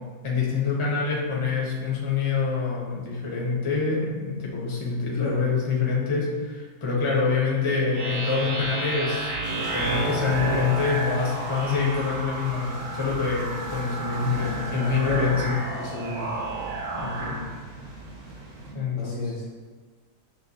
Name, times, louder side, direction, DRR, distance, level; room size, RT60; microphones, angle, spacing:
voice 1, 0.2-15.5 16.9-17.4 18.7-19.3, left 5 dB, 30° left, -4 dB, 0.6 m, -26 dB
sound 1, 7.9-17.4, right 2 dB, 80° right, 1.3 m, -31 dB
sound 2, 9.4-18.7, right 1 dB, 45° right, 0.5 m, -40 dB
voice 2, 15.8-16.3 19.0-19.5, left 1 dB, 65° left, -3 dB, 0.9 m, -32 dB
6.3 x 2.2 x 2.8 m, 1.5 s
omnidirectional pair, 1.6 m